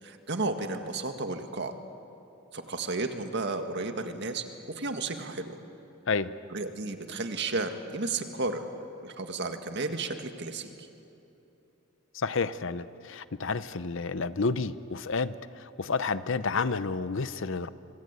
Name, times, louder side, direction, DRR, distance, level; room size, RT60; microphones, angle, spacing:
voice 1, 0.0-1.7 2.5-4.4 4.8-5.6 6.5-8.6 9.0-10.9, right 3 dB, 55° right, 6 dB, 1.9 m, -33 dB
voice 2, 12.1-17.7, left 4 dB, 65° left, 14 dB, 0.8 m, -30 dB
25.5 x 25.5 x 8.3 m, 3.0 s
head